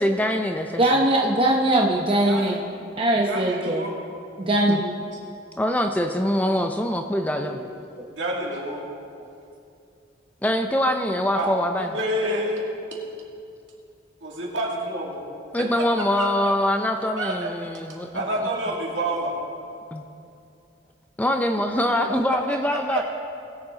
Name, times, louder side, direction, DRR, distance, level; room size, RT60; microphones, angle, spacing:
voice 1, 0.0-0.8 4.4-4.8 5.6-7.6 10.4-11.9 15.5-18.1 19.9-20.0 21.2-23.0, left 1 dB, 10° left, 5 dB, 0.4 m, -24 dB
voice 2, 0.8-2.6 3.0-3.9 4.4-4.9 8.0-8.1, right 1 dB, 25° right, -1 dB, 0.7 m, -21 dB
voice 3, 2.2-2.6 3.2-3.9 4.8-4.9 7.4-7.6 8.1-8.8 11.3-12.7 14.2-15.3 16.2-16.3 17.2-17.5 18.1-19.4 22.7-23.0, right 1 dB, 65° right, -2 dB, 2.2 m, -28 dB
20.5 x 7.4 x 3.8 m, 2.6 s
head